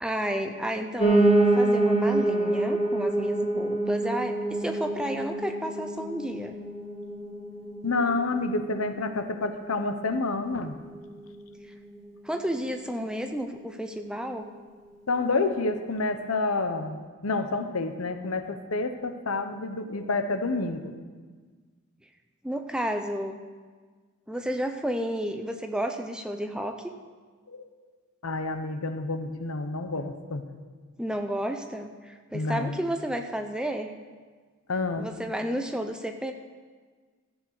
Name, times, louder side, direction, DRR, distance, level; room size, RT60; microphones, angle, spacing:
voice 1, 0.0-6.5 12.2-14.5 22.4-23.4 24.3-26.9 31.0-33.9 35.0-36.3, equal, 5° right, 5 dB, 0.6 m, -31 dB
Piano, 1.0-10.1 10.5-11.7 11.9-12.0 12.3-12.4 12.6-12.7 13.2-13.3, right 2 dB, 25° left, 2.3 m, -26 dB
voice 2, 7.8-10.8 15.1-20.9 27.5-27.7 28.2-30.5 32.3-32.8 34.7-35.1, left 3 dB, 85° left, 8 dB, 0.9 m, -29 dB
14.0 x 7.4 x 6.5 m, 1.5 s
head